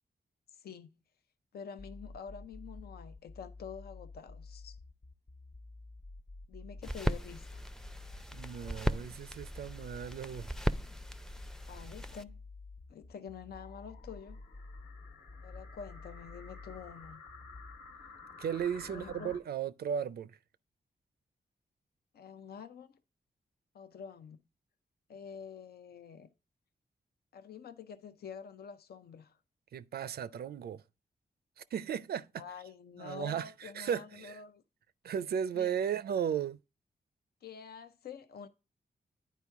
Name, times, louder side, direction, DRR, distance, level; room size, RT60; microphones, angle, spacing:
voice 1, 0.5-0.9 1.5-4.8 6.5-7.6 11.3-11.4 11.7-12.4 12.9-14.4 15.4-17.3 18.9-19.3 22.1-23.0 23.7-24.4 25.1-26.3 27.3-29.4 32.4-34.6 35.5-35.8 37.4-38.5, left 7 dB, 80° left, 0.5 m, -47 dB
sound 1, 1.8-17.8, left 3 dB, 40° left, 0.7 m, -50 dB
sound 2, 6.8-12.2, equal, 5° left, 0.4 m, -37 dB
voice 2, 8.3-10.5 18.4-20.3 29.7-30.8 31.6-32.4 33.0-34.4 35.0-36.6, right 8 dB, 80° right, 0.4 m, -35 dB
sound 3, 13.5-19.4, left 4 dB, 65° left, 1.3 m, -53 dB
9.2 x 4.6 x 3.5 m
cardioid pair, 55°, 16 cm